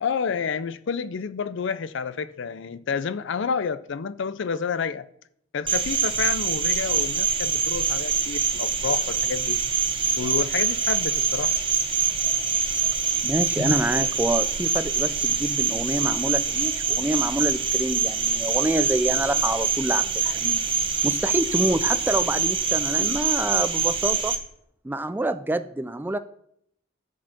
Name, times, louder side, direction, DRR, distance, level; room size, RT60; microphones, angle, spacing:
voice 1, 0.0-5.1 5.5-9.6 10.2-11.5 13.6-13.7, left 6 dB, 65° left, 0.4 m, -29 dB
Cricket, 5.7-24.4, right 6 dB, 25° right, 1.0 m, -25 dB
voice 2, 13.2-20.6 21.0-24.3 24.8-26.2, right 1 dB, 10° right, 0.3 m, -27 dB
13.0 x 4.4 x 5.8 m
head